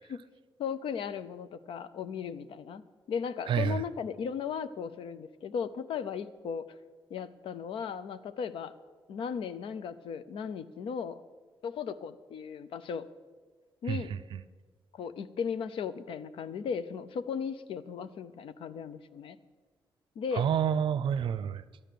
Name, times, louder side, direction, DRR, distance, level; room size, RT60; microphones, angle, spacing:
voice 1, 0.6-6.7 7.1-8.7 9.1-11.2 11.6-13.1 13.8-14.1 14.9-19.4 20.2-20.5, left 6 dB, 75° left, 14 dB, 0.6 m, -36 dB
voice 2, 3.5-3.8 13.9-14.4 20.3-21.6, right 8 dB, 65° right, 15 dB, 0.5 m, -29 dB
12.5 x 9.3 x 6.8 m, 1.4 s
wide cardioid pair, 140°, 9 cm